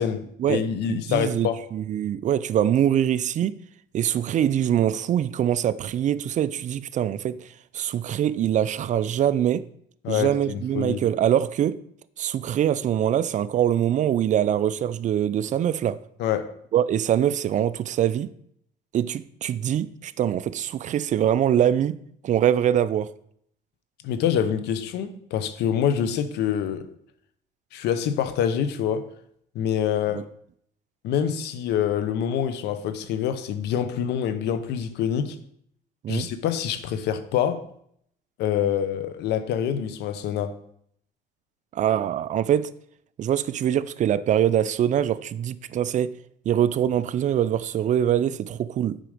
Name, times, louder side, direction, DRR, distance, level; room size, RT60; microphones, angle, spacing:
voice 1, 0.0-1.6 10.0-11.0 16.2-16.5 24.0-26.9 27.7-29.1 29.5-30.2 31.0-35.4 36.1-37.6 38.4-40.6, left 9 dB, 80° left, 0.8 m, -26 dB
voice 2, 0.9-3.5 3.9-7.5 7.7-9.7 10.1-11.8 12.2-16.0 16.7-18.3 18.9-22.0 22.2-23.1 30.1-30.2 36.0-36.3 41.7-42.7 43.2-46.1 46.5-49.0, right 10 dB, 45° right, 0.4 m, -23 dB
7.5 x 5.1 x 5.0 m
cardioid pair, 110°, 17 cm